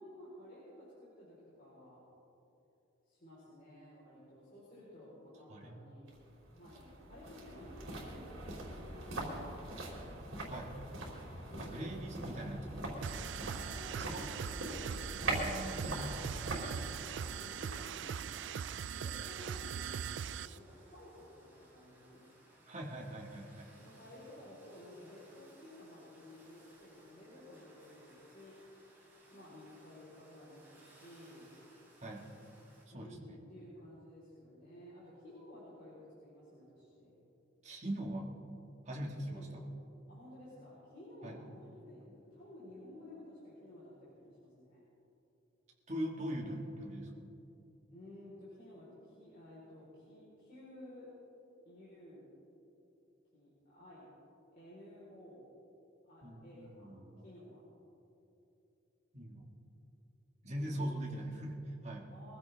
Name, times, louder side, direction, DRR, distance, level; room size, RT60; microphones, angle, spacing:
voice 1, 0.0-2.0 3.1-6.1 6.5-10.1 11.4-12.5 13.6-15.2 17.2-18.7 18.9-22.2 23.7-28.5 29.3-31.5 32.9-37.1 39.2-39.6 40.1-44.8 46.3-46.6 47.9-51.1 51.6-52.3 53.3-54.1 54.5-55.4 56.0-57.0 57.2-57.6 60.6-61.0 62.1-62.4, left 1 dB, 45° left, -9 dB, 4.0 m, -54 dB
sound 1, 6.1-19.2 19.5-19.6, right 1 dB, 80° right, 3.0 m, -42 dB
voice 2, 11.6-12.8 13.1-13.5 14.0-14.2 15.3-16.6 22.7-23.7 32.0-32.3 32.9-33.3 37.6-38.3 38.8-39.6 41.2-41.3 45.9-47.1 56.2-57.1 59.1-59.5 60.4-62.1, right 1 dB, 35° right, -1 dB, 1.8 m, -41 dB
sound 2, 13.0-20.6, right 8 dB, 60° right, 0.3 m, -41 dB
sound 3, 17.4-32.8, right 1 dB, 10° right, 3.6 m, -64 dB
22.5 x 15.0 x 3.5 m, 3.0 s
head